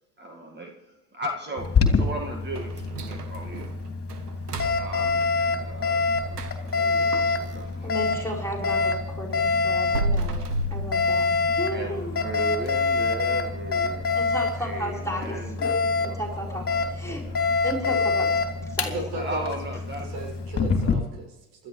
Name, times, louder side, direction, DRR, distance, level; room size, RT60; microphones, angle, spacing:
voice 1, 0.2-3.7 4.7-8.0 11.7-14.1 14.6-17.3 19.1-20.2, right 1 dB, 25° right, 2.1 m, -37 dB
Alarm, 1.6-21.0, left 4 dB, 30° left, 3.0 m, -26 dB
sound 1, 2.5-8.5 8.9-11.7 12.1-12.2 12.6-12.8 13.3-13.6 13.9-14.0 14.6-14.7, right 1 dB, 90° right, 1.4 m, -34 dB
voice 2, 7.8-10.4 10.7-12.2 14.1-15.4 16.0-17.2 17.6-18.9, equal, 5° left, 4.6 m, -34 dB
voice 3, 18.8-19.5 20.0-21.7, right 1 dB, 60° right, 6.8 m, -36 dB
28.0 x 12.5 x 3.3 m
hypercardioid pair, 70°, 46 cm